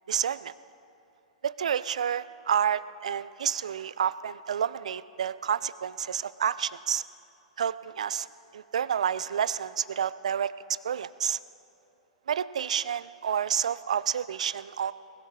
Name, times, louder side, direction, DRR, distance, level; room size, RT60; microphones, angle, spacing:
voice 1, 0.1-0.5 1.4-7.0 7.6-8.3 8.5-10.5 10.8-11.4 12.3-14.9, right 8 dB, 70° right, 17 dB, 0.4 m, -29 dB
21.0 x 11.5 x 4.2 m, 3.0 s
figure-of-eight pair, 105°, 4 cm